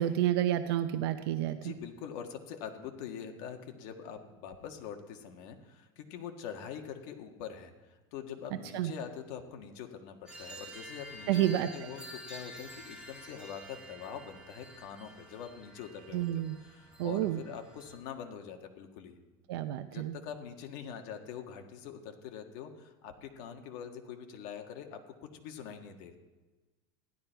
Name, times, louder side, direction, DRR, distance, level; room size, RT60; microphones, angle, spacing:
voice 1, 0.0-1.7 8.7-8.9 11.3-11.7 16.1-16.6 17.0-17.4 19.5-20.2, right 12 dB, 80° right, 9 dB, 0.7 m, -29 dB
voice 2, 1.5-19.2 19.8-26.2, left 8 dB, 60° left, 4 dB, 1.6 m, -44 dB
sound 1, 10.3-18.0, equal, 5° right, 2.4 m, -49 dB
15.5 x 12.0 x 4.6 m, 1.2 s
supercardioid pair, 160°, 13 cm